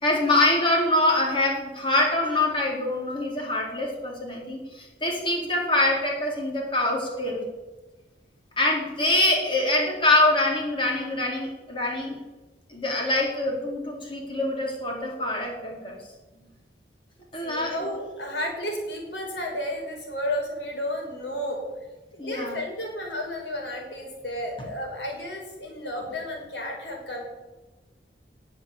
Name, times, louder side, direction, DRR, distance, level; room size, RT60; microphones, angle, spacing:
voice 1, 0.0-7.4 8.6-12.2 12.7-15.9 17.3-17.8 22.2-22.6, left 2 dB, 30° left, -1 dB, 4.2 m, -24 dB
voice 2, 17.4-21.6 22.1-27.2, left 1 dB, 85° left, 1 dB, 5.4 m, -32 dB
19.0 x 7.4 x 8.4 m, 1.2 s
head